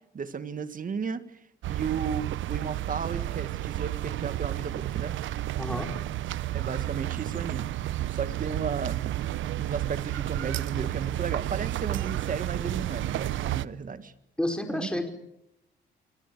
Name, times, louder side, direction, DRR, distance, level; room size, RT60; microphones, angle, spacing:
voice 1, 0.1-1.4 1.7-5.1 6.5-7.7 8.1-9.2 9.6-14.1 14.7-14.9, right 6 dB, 45° right, 11 dB, 2.0 m, -34 dB
sound 1, 1.6-13.7, right 14 dB, 75° right, 0.9 m, -31 dB
voice 2, 5.6-5.9 14.4-15.1, left 1 dB, 5° left, 4 dB, 5.1 m, -30 dB
27.0 x 26.0 x 6.9 m, 0.84 s
cardioid pair, 90°, 20 cm